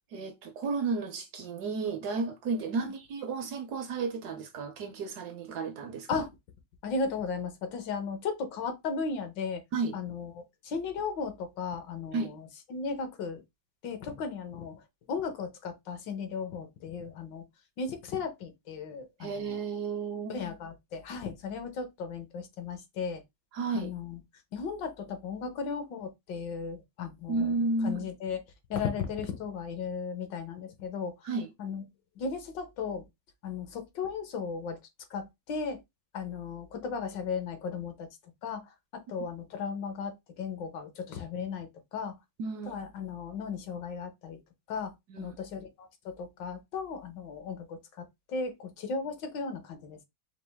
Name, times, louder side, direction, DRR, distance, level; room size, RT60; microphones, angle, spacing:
voice 1, 0.1-6.3 9.7-10.0 12.1-12.3 19.2-20.4 23.5-23.9 27.3-28.0 31.2-31.5 42.4-42.8 45.1-45.4, right 3 dB, 70° right, 1.0 m, -33 dB
voice 2, 6.8-9.6 9.9-10.3 10.6-12.4 12.7-13.4 13.8-14.8 15.1-17.4 17.8-19.5 20.3-23.2 23.7-24.2 24.5-27.5 27.8-28.4 28.7-31.1 31.6-31.8 32.2-33.0 33.4-34.8 35.1-35.8 36.1-38.1 38.4-38.6 38.9-42.2 42.7-44.4 44.7-50.0, left 5 dB, 70° left, 1.5 m, -36 dB
5.1 x 2.5 x 3.4 m
omnidirectional pair, 2.1 m